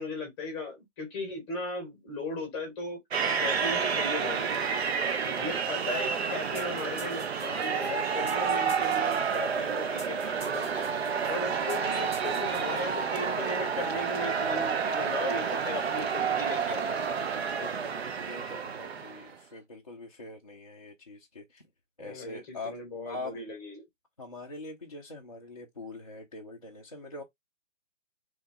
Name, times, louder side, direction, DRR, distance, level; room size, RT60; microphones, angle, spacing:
voice 1, 0.0-3.0 3.4-4.7 5.3-10.9 11.3-16.9 17.6-17.9 22.0-23.8, left 2 dB, 15° left, 1.0 m, -37 dB
sound 1, 3.1-19.3, right 6 dB, 55° right, 0.6 m, -30 dB
voice 2, 5.2-5.8 17.8-21.6 22.0-22.8 23.0-23.4 24.2-27.2, left 2 dB, 30° left, 0.4 m, -43 dB
sound 2, 6.5-13.2, left 1 dB, 5° right, 0.7 m, -50 dB
2.8 x 2.2 x 3.7 m
figure-of-eight pair, 145°, 39 cm